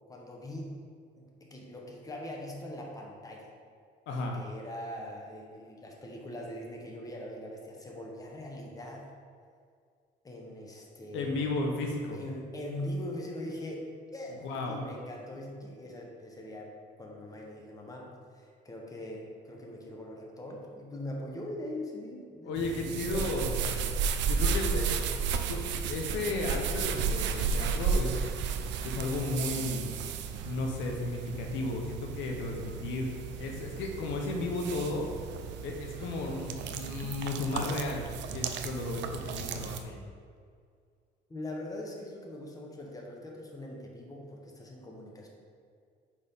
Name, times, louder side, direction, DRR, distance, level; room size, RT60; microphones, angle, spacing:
voice 1, 0.1-0.7 1.2-3.5 4.3-9.1 10.2-11.5 12.1-14.4 14.7-24.0 41.3-45.3, left 1 dB, 20° left, -1 dB, 1.1 m, -42 dB
voice 2, 4.1-4.4 11.1-12.2 14.4-14.8 22.4-23.5 24.2-25.6 25.9-28.2 28.8-29.9 30.4-33.1 33.4-35.1 35.6-38.0 38.3-40.0, left 2 dB, 80° left, 1 dB, 0.9 m, -34 dB
sound 1, 22.6-39.8, right 6 dB, 70° right, 0.5 m, -33 dB
4.8 x 4.5 x 5.5 m, 2.2 s
cardioid pair, 105°, 19 cm